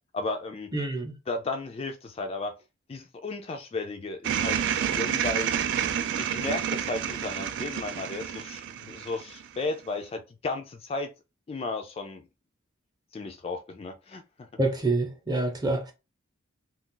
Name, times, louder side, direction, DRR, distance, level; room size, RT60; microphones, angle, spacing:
voice 1, 0.1-0.7 1.3-2.5 2.9-5.6 6.2-11.1 11.5-12.3 13.1-14.5, left 3 dB, 30° left, 0.3 m, -34 dB
voice 2, 0.7-1.1 14.6-15.9, right 2 dB, 20° right, 0.7 m, -27 dB
sound 1, 4.2-9.7, right 9 dB, 65° right, 0.3 m, -29 dB
2.4 x 2.4 x 3.7 m
head